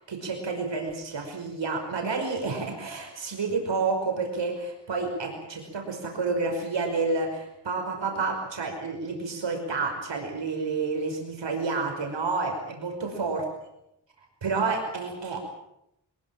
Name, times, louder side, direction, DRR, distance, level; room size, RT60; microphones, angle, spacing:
voice 1, 0.0-13.4 14.4-15.4, right 4 dB, 75° right, 3 dB, 5.5 m, -29 dB
24.0 x 21.5 x 7.6 m, 0.80 s
wide cardioid pair, 100°, 44 cm